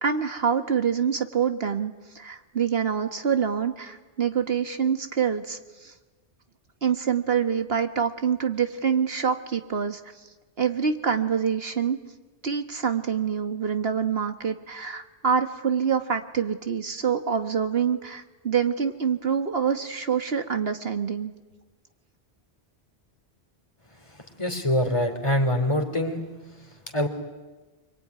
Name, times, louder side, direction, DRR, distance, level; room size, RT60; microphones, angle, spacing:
voice 1, 0.0-5.9 6.8-10.0 10.6-12.0 12.4-21.3, right 7 dB, 60° right, 7 dB, 1.6 m, -26 dB
voice 2, 24.4-26.2 26.9-27.1, left 1 dB, 25° left, 5 dB, 3.2 m, -24 dB
26.0 x 24.0 x 9.5 m, 1.2 s
omnidirectional pair, 1.1 m